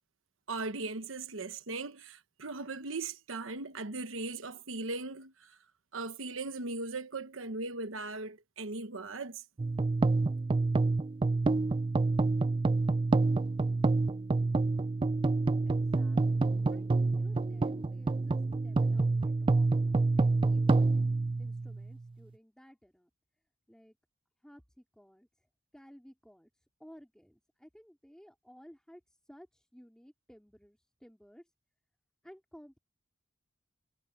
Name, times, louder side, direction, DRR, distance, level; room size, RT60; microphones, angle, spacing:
voice 1, 0.5-5.6 5.9-9.4, right 3 dB, 75° right, 1.1 m, -38 dB
sound 1, 9.6-22.0, right 3 dB, 25° right, 0.3 m, -28 dB
voice 2, 15.7-21.1 21.4-23.1 23.7-24.0 24.4-25.3 25.7-26.5 26.8-31.5 32.2-32.8, equal, 5° left, 3.6 m, -56 dB
head